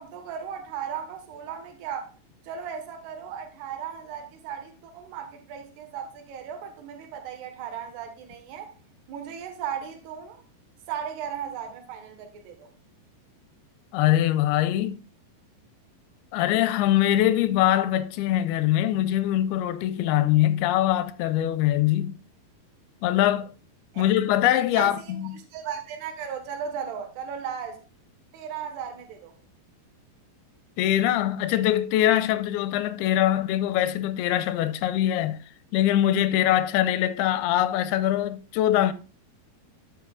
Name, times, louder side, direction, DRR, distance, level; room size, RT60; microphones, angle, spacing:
voice 1, 0.0-2.1 2.4-8.7 9.1-10.4 10.9-12.7 23.9-24.0 24.7-27.8 28.3-29.3, right 8 dB, 85° right, 3.4 m, -36 dB
voice 2, 13.9-15.0 16.3-22.2 23.0-23.5 24.0-25.3 30.8-35.4 35.7-38.9, left 12 dB, 85° left, 2.6 m, -23 dB
12.5 x 7.6 x 2.4 m
omnidirectional pair, 4.6 m